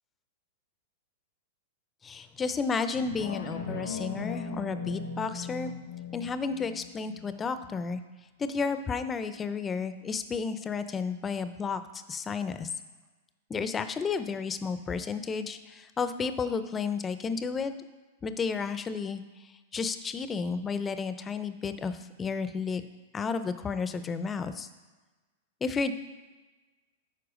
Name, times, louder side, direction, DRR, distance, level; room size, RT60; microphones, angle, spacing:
voice 1, 2.0-5.7 6.1-8.0 8.4-11.8 12.1-12.7 13.5-17.7 18.2-19.2 19.7-22.8 23.1-24.7 25.6-25.9, left 5 dB, 20° left, 11 dB, 0.6 m, -32 dB
sound 1, 2.9-8.0 8.4-8.5, left 4 dB, 85° left, 1.0 m, -39 dB
9.6 x 4.7 x 5.0 m, 1.2 s
hypercardioid pair, 110°, 0 cm